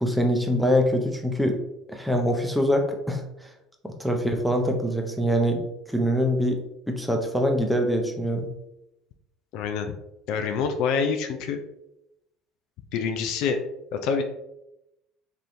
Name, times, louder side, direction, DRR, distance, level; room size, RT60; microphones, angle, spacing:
voice 1, 0.0-1.6 1.9-3.5 3.8-6.6 6.9-8.5, equal, ahead, 3 dB, 0.6 m, -24 dB
voice 2, 9.5-10.0 10.3-11.6 12.9-13.6 13.9-14.2, left 6 dB, 65° left, 6 dB, 0.3 m, -26 dB
3.3 x 2.8 x 2.6 m, 0.86 s
hypercardioid pair, 65°, 0 cm